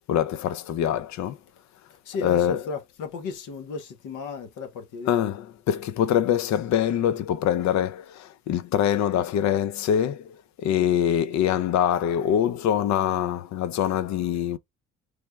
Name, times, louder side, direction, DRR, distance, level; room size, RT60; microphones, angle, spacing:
voice 1, 0.1-1.4 2.2-2.6 5.1-14.6, left 10 dB, 65° left, 0.5 m, -24 dB
voice 2, 1.9-5.3, left 5 dB, 90° left, 0.9 m, -35 dB
3.3 x 2.2 x 3.4 m
cardioid pair, 90°, 30 cm